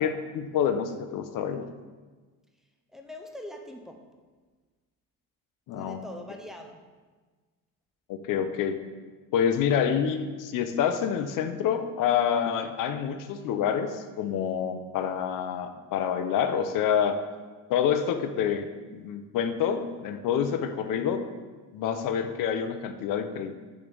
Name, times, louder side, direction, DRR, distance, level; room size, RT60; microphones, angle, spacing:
voice 1, 0.0-1.7 5.7-6.0 8.1-8.8 9.3-17.2 17.7-18.7 18.9-21.2 21.7-23.5, left 8 dB, 65° left, 9 dB, 0.6 m, -27 dB
voice 2, 2.9-4.1 5.8-6.9, equal, ahead, 2 dB, 0.4 m, -43 dB
7.0 x 3.3 x 5.2 m, 1.4 s
cardioid pair, 160°, 35 cm